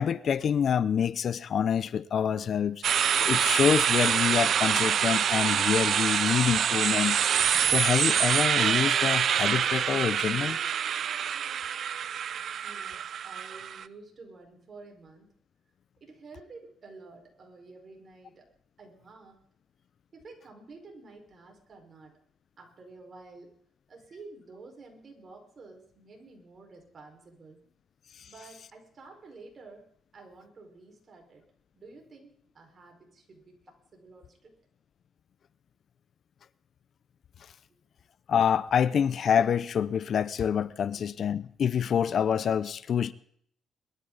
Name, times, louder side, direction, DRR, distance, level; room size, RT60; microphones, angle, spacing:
voice 1, 0.0-2.8 3.2-7.2 7.7-10.6 28.2-28.3 38.3-43.1, left 8 dB, 55° left, 0.6 m, -26 dB
sound 1, 2.8-13.8, right 8 dB, 60° right, 0.5 m, -26 dB
voice 2, 12.6-15.3 16.0-18.5 18.8-19.4 20.1-22.1 22.6-23.5 23.9-27.6 28.3-29.8 30.1-31.4 31.7-34.5 40.9-41.0, right 3 dB, 45° right, 4.8 m, -50 dB
22.0 x 13.0 x 4.0 m
cardioid pair, 90°, 0 cm